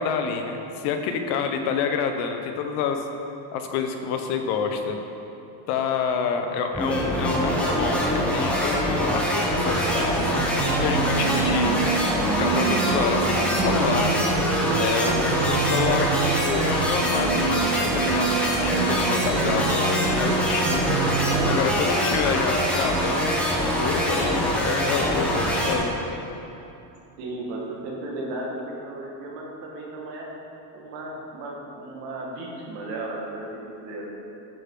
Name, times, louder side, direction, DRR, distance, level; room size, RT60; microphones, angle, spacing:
voice 1, 0.0-3.1 3.5-5.0 5.7-11.8 12.4-14.1 14.8-20.8 21.4-26.0, left 6 dB, 70° left, 6 dB, 1.0 m, -28 dB
sound 1, 6.7-25.8, equal, ahead, 0.7 m, -24 dB
sound 2, 9.5-21.6, right 6 dB, 35° right, 0.6 m, -28 dB
sound 3, 9.6-25.8, left 3 dB, 90° left, 1.6 m, -40 dB
voice 2, 21.8-22.1 27.2-30.3 30.7-34.1, right 2 dB, 85° right, -2 dB, 2.0 m, -35 dB
10.5 x 6.8 x 3.8 m, 2.9 s
cardioid pair, 170°, 50 cm